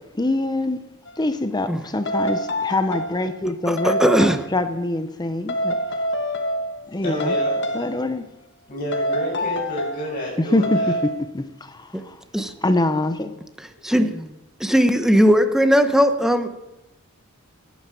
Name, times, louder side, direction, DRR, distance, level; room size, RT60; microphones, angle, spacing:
voice 1, 0.2-0.8 1.2-4.0 4.5-5.8 6.9-7.3 7.7-8.3 10.4-12.2 12.6-13.3, left 2 dB, 20° left, 0.8 m, -24 dB
sound 1, 1.1-1.2 2.1-3.3 3.8-4.5 5.5-6.9 7.2-8.1 8.9-10.1 10.6-11.2, equal, 55° left, 1.2 m, -26 dB
voice 2, 3.7-4.4 11.9-12.0 12.3-12.5 13.8-14.3 14.6-16.6, equal, ahead, 1.1 m, -18 dB
voice 3, 7.0-7.7 8.7-10.9 12.4-12.5, equal, 35° left, 6.4 m, -29 dB
19.0 x 9.5 x 6.9 m
head